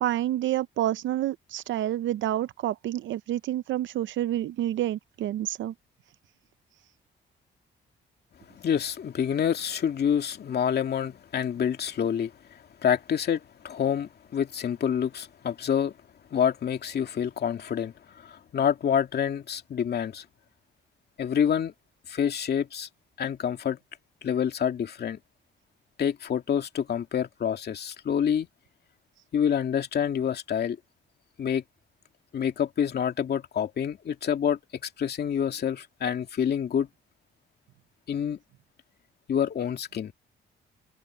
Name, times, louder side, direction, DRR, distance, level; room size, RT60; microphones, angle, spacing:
voice 1, 0.0-5.7, right 13 dB, 75° right, 0.6 m, -28 dB
voice 2, 8.5-15.9 16.3-20.3 21.2-21.7 22.1-22.9 23.2-23.8 24.2-25.2 26.0-28.5 29.3-30.8 31.4-31.6 32.3-36.9 38.1-38.4 39.3-40.1, left 8 dB, 55° left, 2.4 m, -27 dB
cardioid pair, 90°, 20 cm